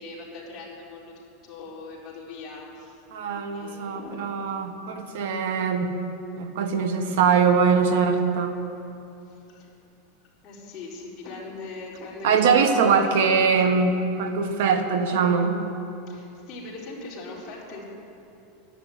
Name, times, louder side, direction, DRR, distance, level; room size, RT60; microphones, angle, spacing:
voice 1, 0.0-3.0 3.3-4.3 9.3-9.7 10.4-13.7 16.1-17.8, left 3 dB, 30° left, -5 dB, 4.2 m, -40 dB
voice 2, 3.1-5.9 6.3-8.6 12.2-15.6, right 5 dB, 70° right, 6 dB, 1.5 m, -22 dB
12.0 x 11.0 x 9.4 m, 2.8 s
supercardioid pair, 170°, 0 cm